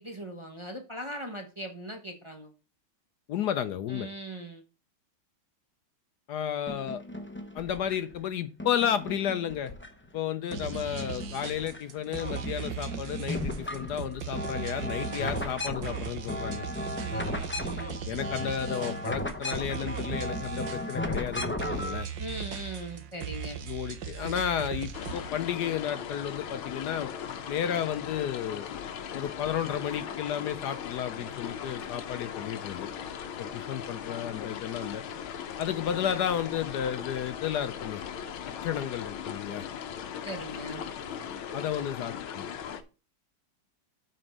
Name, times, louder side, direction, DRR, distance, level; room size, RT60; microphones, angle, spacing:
voice 1, 0.0-2.5 3.9-4.6 17.0-18.0 22.2-23.6 40.2-40.8, right 1 dB, 20° right, 2 dB, 0.9 m, -40 dB
voice 2, 3.3-4.1 6.3-7.0 7.5-9.7 10.1-16.7 18.1-22.1 23.6-27.1 27.5-28.7 29.1-32.9 33.4-35.0 35.6-38.0 38.6-39.6 41.5-42.5, left 9 dB, 70° left, 12 dB, 1.0 m, -32 dB
sound 1, 6.7-8.2 8.6-10.2 10.5-11.8 12.1-22.0, left 1 dB, 15° left, 0.3 m, -36 dB
sound 2, 10.5-25.3, right 8 dB, 65° right, 1.7 m, -38 dB
sound 3, 24.9-42.8, left 8 dB, 85° left, 1.7 m, -38 dB
7.9 x 4.4 x 6.5 m, 0.32 s
omnidirectional pair, 2.2 m